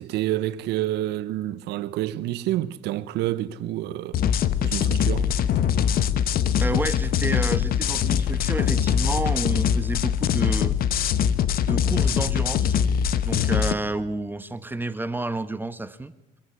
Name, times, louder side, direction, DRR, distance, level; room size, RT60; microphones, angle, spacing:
voice 1, 0.0-4.2 4.6-5.3, right 14 dB, 85° right, 1.0 m, -28 dB
sound 1, 3.7-4.0 5.5-6.7 8.3-9.4, left 9 dB, 85° left, 1.8 m, -41 dB
sound 2, 4.1-13.7, left 8 dB, 60° left, 1.0 m, -22 dB
voice 2, 6.6-10.8 11.6-12.8 13.2-16.1, right 2 dB, 10° right, 1.1 m, -30 dB
25.0 x 14.5 x 9.6 m
cardioid pair, 110°, 17 cm